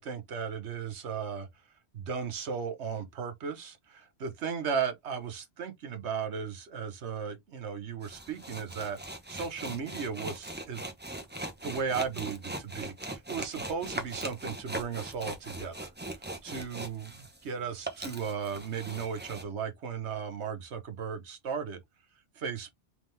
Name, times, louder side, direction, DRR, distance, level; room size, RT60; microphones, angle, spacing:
voice 1, 0.0-1.5 1.9-10.8 11.6-15.9 16.4-21.8 22.4-22.7, right 6 dB, 85° right, 1.2 m, -36 dB
sound 1, 8.0-17.5 17.7-19.4, right 1 dB, 10° right, 0.8 m, -40 dB
3.6 x 3.4 x 3.2 m
omnidirectional pair, 1.1 m